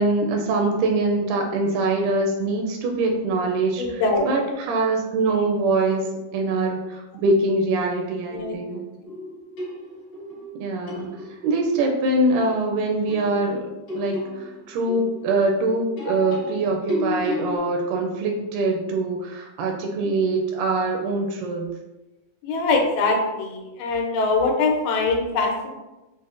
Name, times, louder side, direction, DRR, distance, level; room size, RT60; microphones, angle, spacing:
voice 1, 0.0-3.8 4.3-8.8 10.6-11.1 11.4-21.7, right 2 dB, 80° right, 1 dB, 2.0 m, -23 dB
voice 2, 3.8-4.5 8.3-8.8 22.4-25.7, left 3 dB, 85° left, 1 dB, 2.4 m, -23 dB
sound 1, 9.0-11.5 13.1-17.6, left 1 dB, 60° left, 1.2 m, -32 dB
6.1 x 2.0 x 2.5 m, 1.0 s
omnidirectional pair, 3.9 m